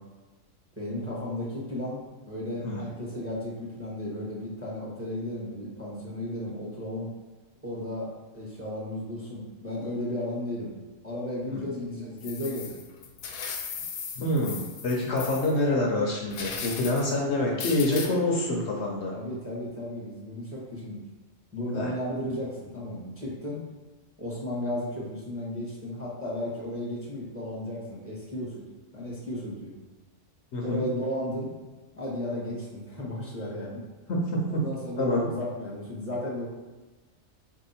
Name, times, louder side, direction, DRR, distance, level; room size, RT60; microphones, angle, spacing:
voice 1, 0.8-2.0 2.3-7.1 7.6-10.7 11.0-12.8 17.1-17.5 19.1-21.0 21.5-23.7 24.2-28.6 28.9-29.7 30.6-31.5 32.0-33.8 34.5-36.5, left 1 dB, 10° right, -6 dB, 1.0 m, -34 dB
sound 1, 12.2-15.6 16.3-17.1 17.6-18.1, left 6 dB, 90° left, 1.1 m, -37 dB
voice 2, 14.2-19.1 21.7-21.9 30.5-30.9 34.1-34.4 35.0-35.3, left 2 dB, 60° left, -1 dB, 0.9 m, -26 dB
4.3 x 2.7 x 4.2 m, 1.2 s
omnidirectional pair, 1.4 m